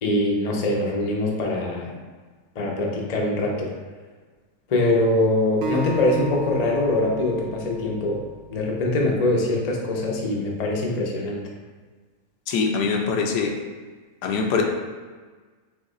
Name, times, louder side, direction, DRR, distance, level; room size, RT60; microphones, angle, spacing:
voice 1, 0.0-1.9 2.6-3.7 4.7-8.2 8.5-11.4, left 2 dB, 60° left, -1 dB, 0.4 m, -23 dB
Acoustic guitar, 5.6-8.9, right 2 dB, 75° right, 0.6 m, -33 dB
voice 2, 12.5-13.6 14.2-14.6, left 5 dB, 85° left, 3 dB, 1.2 m, -23 dB
4.0 x 2.9 x 3.9 m, 1.4 s
omnidirectional pair, 1.7 m